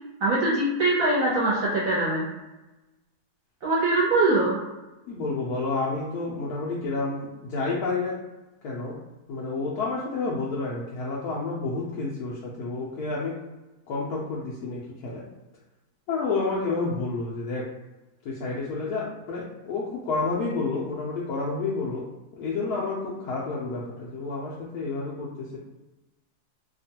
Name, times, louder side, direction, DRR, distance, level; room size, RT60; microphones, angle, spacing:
voice 1, 0.2-2.2 3.6-4.6, right 2 dB, 60° right, -7 dB, 1.1 m, -22 dB
voice 2, 5.1-8.2 8.6-9.0 9.3-13.3 13.9-15.2 16.1-17.6 18.2-22.1 22.4-25.6, left 3 dB, 70° left, -5 dB, 1.0 m, -30 dB
2.9 x 2.4 x 2.7 m, 1.1 s
omnidirectional pair, 1.8 m